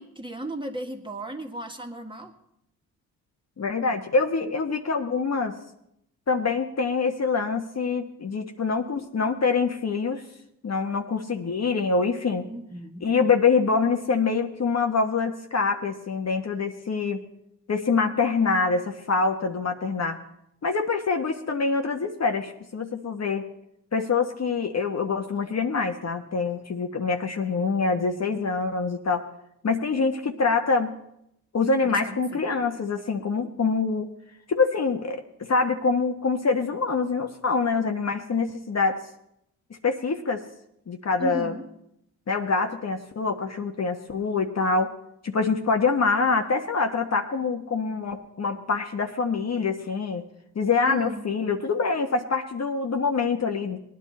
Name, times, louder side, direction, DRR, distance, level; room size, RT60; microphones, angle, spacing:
voice 1, 0.0-2.3 12.4-13.1 31.8-32.5 41.2-41.6 50.8-51.3, right 1 dB, 10° right, 2 dB, 2.0 m, -35 dB
voice 2, 3.6-5.6 6.3-10.2 10.6-12.5 13.0-17.2 17.7-20.2 20.6-23.5 23.9-29.2 29.6-30.9 31.5-34.1 34.5-39.0 39.8-40.4 40.9-41.5 42.3-44.9 45.2-50.2 50.5-53.8, left 4 dB, 40° left, 4 dB, 1.2 m, -25 dB
19.0 x 10.0 x 4.3 m, 0.79 s
supercardioid pair, 60°, 39 cm